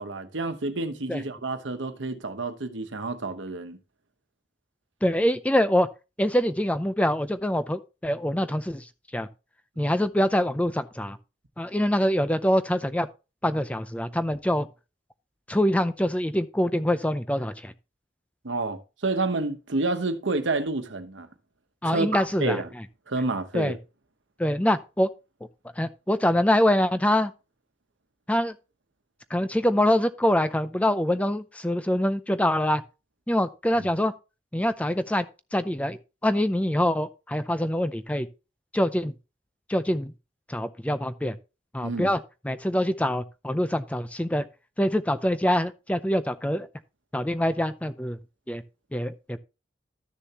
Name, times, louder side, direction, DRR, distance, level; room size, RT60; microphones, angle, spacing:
voice 1, 0.0-3.8 18.4-21.3 21.8-22.7 23.1-23.8 41.8-42.1, right 3 dB, 85° right, 1.1 m, -29 dB
voice 2, 5.0-5.9 6.2-9.3 9.8-11.2 11.6-13.1 13.4-14.7 15.5-17.7 21.8-22.6 23.5-23.7 24.4-25.1 25.8-27.3 28.3-28.5 29.3-32.8 33.3-34.1 34.5-35.3 35.5-38.3 38.7-39.1 39.7-40.1 40.5-41.4 41.7-42.2 42.4-44.4 44.8-46.7 47.1-48.2 48.5-48.6 48.9-49.4, left 1 dB, 5° left, 0.5 m, -24 dB
12.5 x 6.7 x 2.9 m
head